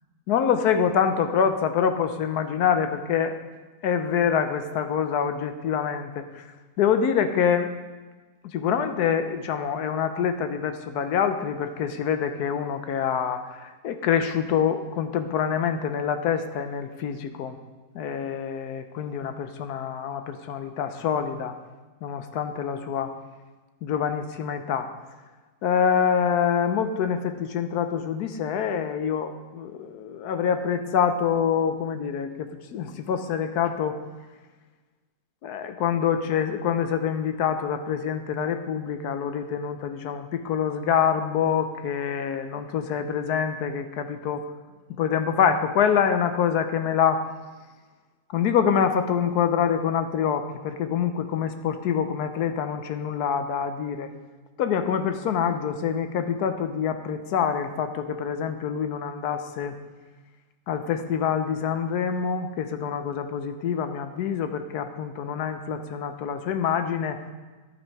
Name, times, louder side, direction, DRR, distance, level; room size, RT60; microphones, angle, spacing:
voice 1, 0.3-3.3 3.8-6.4 6.8-7.7 8.5-17.6 17.9-21.5 22.0-23.1 23.8-24.9 25.6-34.0 35.4-44.4 45.0-47.2 48.3-54.1 54.6-59.8 60.7-67.2, left 7 dB, 90° left, 8 dB, 1.3 m, -26 dB
11.5 x 6.8 x 4.6 m, 1.3 s
omnidirectional pair, 1.6 m